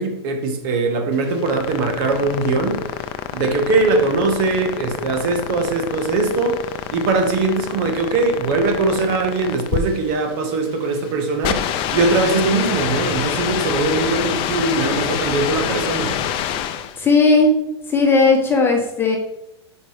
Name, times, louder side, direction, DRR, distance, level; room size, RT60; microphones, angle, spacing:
voice 1, 0.0-2.8 3.3-6.6 6.9-11.6 11.9-16.2, right 3 dB, 50° right, 1.7 m, -21 dB
sound 1, 1.1-17.0, left 9 dB, 40° left, 0.6 m, -26 dB
voice 2, 17.0-17.5 17.9-19.2, left 3 dB, 15° left, 1.4 m, -15 dB
5.4 x 5.3 x 5.1 m
hypercardioid pair, 125°, 14 cm